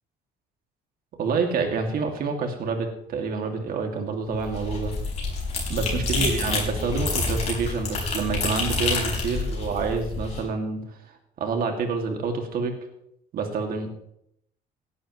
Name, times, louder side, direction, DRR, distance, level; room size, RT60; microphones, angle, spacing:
voice 1, 1.2-4.9 5.7-10.8 11.4-12.8 13.3-13.9, right 4 dB, 60° right, 4 dB, 2.4 m, -27 dB
sound 1, 4.3-10.4, left 3 dB, 40° left, 5.2 m, -28 dB
17.5 x 11.0 x 3.2 m, 0.74 s
cardioid pair, 110°, 17 cm